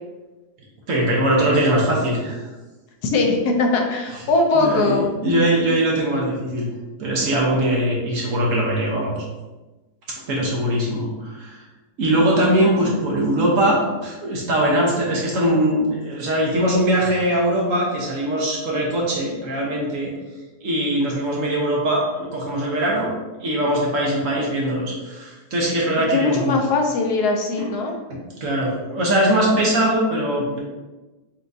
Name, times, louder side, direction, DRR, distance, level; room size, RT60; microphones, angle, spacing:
voice 1, 0.9-2.4 4.6-6.7 7.0-9.1 10.3-11.6 12.0-20.1 20.6-23.1 23.4-26.6 27.6-27.7 28.1-30.6, right 1 dB, 55° right, -3 dB, 1.1 m, -21 dB
voice 2, 3.0-5.1 26.1-27.9, left 3 dB, 75° left, 2 dB, 1.1 m, -20 dB
4.4 x 3.6 x 2.6 m, 1.2 s
omnidirectional pair, 1.8 m